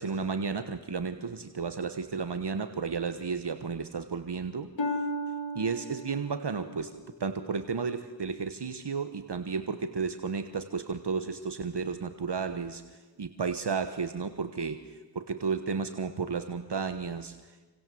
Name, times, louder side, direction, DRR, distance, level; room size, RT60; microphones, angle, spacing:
voice 1, 0.0-5.1 5.5-17.7, right 5 dB, 65° right, 10 dB, 1.4 m, -33 dB
Harp, 4.8-8.5 9.1-9.5 10.1-10.2, equal, 80° left, 2.3 m, -37 dB
28.0 x 26.5 x 7.8 m, 1.3 s
wide cardioid pair, 55°, 44 cm